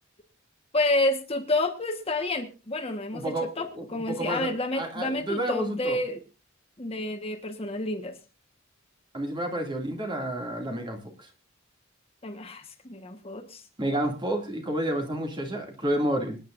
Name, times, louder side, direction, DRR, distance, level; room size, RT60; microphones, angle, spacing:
voice 1, 0.7-6.2 6.8-8.2 12.2-13.6, left 2 dB, 30° left, 5 dB, 1.3 m, -29 dB
voice 2, 3.1-3.5 3.7-6.0 9.1-11.3 13.8-16.4, right 1 dB, 25° right, 2 dB, 2.4 m, -30 dB
26.0 x 9.8 x 2.6 m, 0.31 s
head